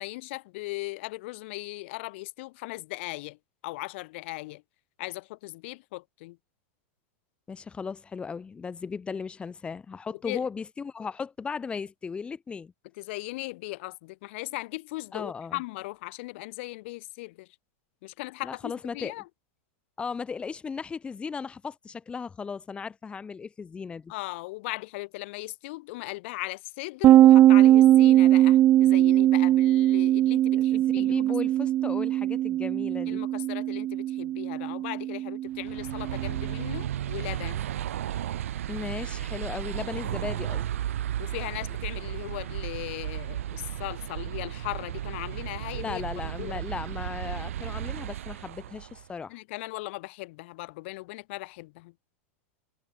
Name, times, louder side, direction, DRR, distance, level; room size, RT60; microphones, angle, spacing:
voice 1, 0.0-3.4 3.6-4.6 5.0-6.4 10.1-10.5 13.0-17.5 18.0-19.2 24.1-31.2 33.1-37.7 41.2-46.0 46.4-46.6 49.3-51.9, left 22 dB, 60° left, 7.6 m, -38 dB
voice 2, 7.5-12.7 15.1-15.6 18.4-19.1 20.0-24.1 30.5-33.2 38.7-40.7 45.7-49.4, left 5 dB, 15° left, 4.0 m, -36 dB
sound 1, 27.0-36.5, right 13 dB, 30° right, 0.8 m, -20 dB
sound 2, 35.5-49.1, right 11 dB, 90° right, 6.4 m, -34 dB
supercardioid pair, 145°, 7 cm